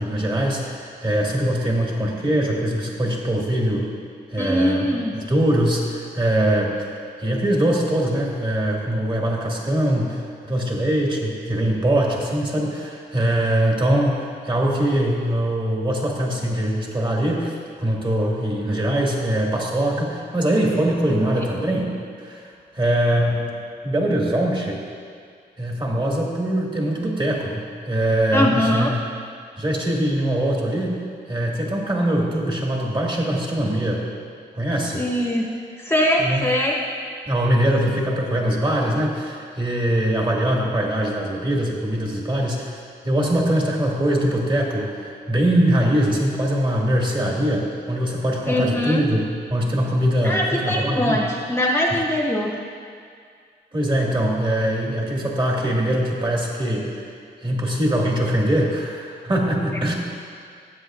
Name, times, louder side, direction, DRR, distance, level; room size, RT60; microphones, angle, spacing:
voice 1, 0.0-3.9 4.3-4.8 5.1-6.7 7.2-21.9 22.2-22.4 22.7-23.5 23.8-24.8 25.6-29.0 29.6-31.0 31.3-34.0 34.5-35.1 36.2-36.4 37.3-49.2 49.5-51.2 53.7-56.9 57.4-59.9, right 1 dB, 25° right, -2 dB, 2.0 m, -22 dB
voice 2, 4.4-5.1 28.3-28.9 35.0-35.5 35.8-36.8 48.5-49.0 50.2-52.5, left 1 dB, 15° left, -2 dB, 1.1 m, -22 dB
16.5 x 8.0 x 2.5 m, 2.2 s
cardioid pair, 75°, 18 cm